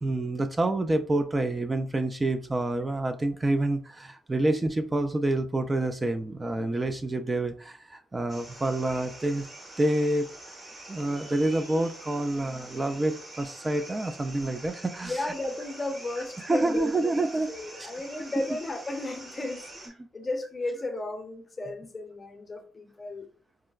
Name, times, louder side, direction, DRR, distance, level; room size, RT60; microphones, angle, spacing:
voice 1, 0.0-9.5 9.8-10.3 10.9-15.3 16.4-17.5 17.8-17.9, right 2 dB, 20° right, 8 dB, 0.3 m, -28 dB
sound 1, 8.3-19.9, right 1 dB, 40° right, 1.1 m, -45 dB
voice 2, 15.0-17.1 17.5-23.3, left 2 dB, 30° left, 5 dB, 0.7 m, -34 dB
4.6 x 2.1 x 2.3 m, 0.41 s
cardioid pair, 90°, 0 cm